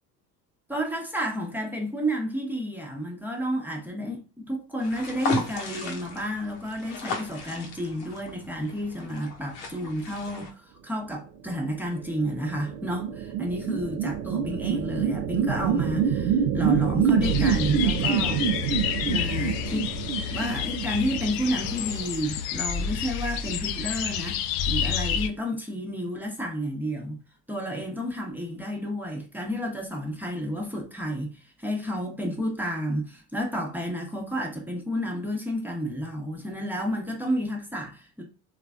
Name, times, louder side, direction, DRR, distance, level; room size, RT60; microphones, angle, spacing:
voice 1, 0.7-18.4 19.1-19.9 20.3-24.4 24.7-27.2 27.5-38.2, equal, 5° right, 0.8 m, -31 dB
sound 1, 4.8-10.5, left 4 dB, 80° left, 0.9 m, -36 dB
sound 2, 11.9-21.6, right 8 dB, 75° right, 0.5 m, -26 dB
sound 3, 17.2-25.3, left 7 dB, 50° left, 0.4 m, -29 dB
3.2 x 2.3 x 2.3 m
hypercardioid pair, 70°, 49 cm